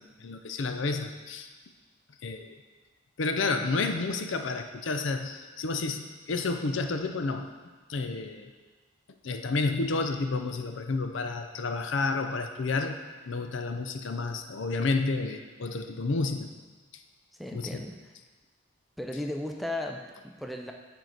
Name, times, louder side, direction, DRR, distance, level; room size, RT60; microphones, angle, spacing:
voice 1, 0.0-1.5 2.2-2.5 3.2-7.5 7.9-8.5 9.2-13.0 13.3-16.5 16.9-17.0 17.5-17.7, left 3 dB, 70° left, 6 dB, 0.5 m, -30 dB
voice 2, 17.3-18.1 19.0-20.7, left 1 dB, ahead, 2 dB, 0.4 m, -36 dB
9.3 x 4.6 x 3.9 m, 1.3 s
head